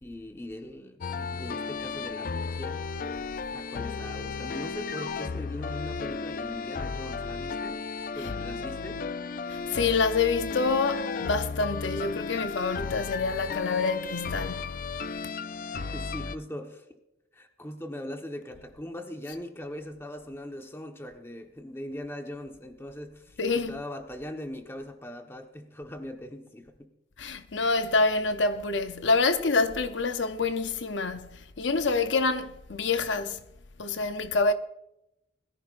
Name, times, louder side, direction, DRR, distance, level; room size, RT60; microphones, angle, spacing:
voice 1, 0.0-2.8 3.5-7.9 8.1-9.1 15.7-17.0 17.3-26.9, left 1 dB, 15° left, 1.2 m, -40 dB
sound 1, 1.0-16.4, left 4 dB, 50° left, 0.4 m, -34 dB
voice 2, 9.5-14.7 15.2-15.3 23.4-23.8 27.2-33.4 33.8-34.5, left 4 dB, 80° left, 0.7 m, -27 dB
21.5 x 14.5 x 2.6 m
head